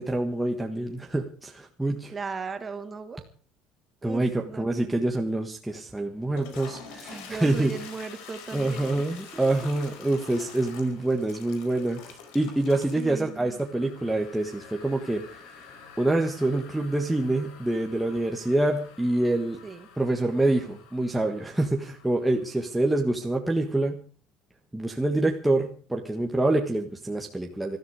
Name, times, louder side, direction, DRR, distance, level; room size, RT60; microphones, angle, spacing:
voice 1, 0.0-2.1 4.0-7.7 8.5-15.4 16.0-19.6 20.0-24.0 24.7-27.8, right 2 dB, 5° right, 1 dB, 1.5 m, -26 dB
voice 2, 2.1-3.3 4.0-4.9 6.9-9.0 9.6-9.9 12.9-13.6 19.6-19.9, right 5 dB, 20° right, 8 dB, 2.2 m, -37 dB
Toilet flush, 6.2-22.9, left 6 dB, 80° left, 4.6 m, -47 dB
21.0 x 13.5 x 4.9 m, 0.41 s
cardioid pair, 155°, 0 cm